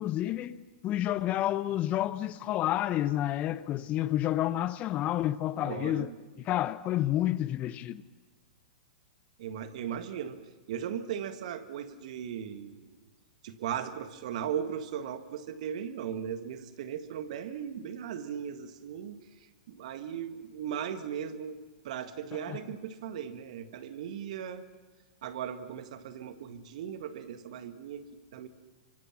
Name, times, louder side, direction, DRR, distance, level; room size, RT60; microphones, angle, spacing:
voice 1, 0.0-6.1 6.4-8.0 22.5-22.6, left 13 dB, 35° left, 0.8 m, -30 dB
voice 2, 5.6-6.2 9.4-10.4 10.7-13.0 13.4-24.6 25.2-28.5, right 8 dB, 60° right, 1.9 m, -38 dB
29.5 x 24.5 x 6.1 m
hypercardioid pair, 110°, 4 cm